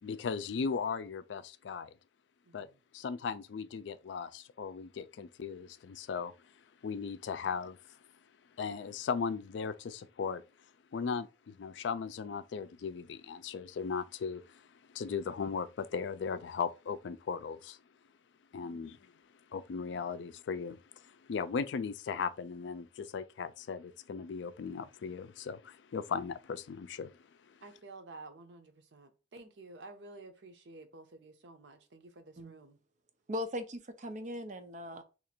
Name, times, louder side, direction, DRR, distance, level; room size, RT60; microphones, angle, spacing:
voice 1, 0.0-1.9 2.5-2.7 2.9-6.3 6.8-8.0 8.6-10.4 10.9-17.8 18.5-19.0 19.5-27.2 27.5-27.6, left 5 dB, 70° left, 0.4 m, -37 dB
voice 2, 2.4-2.8 18.6-18.9 27.6-32.8, right 2 dB, 75° right, 0.7 m, -52 dB
voice 3, 33.3-35.0, left 1 dB, 45° right, 0.6 m, -39 dB
2.9 x 2.5 x 4.3 m
head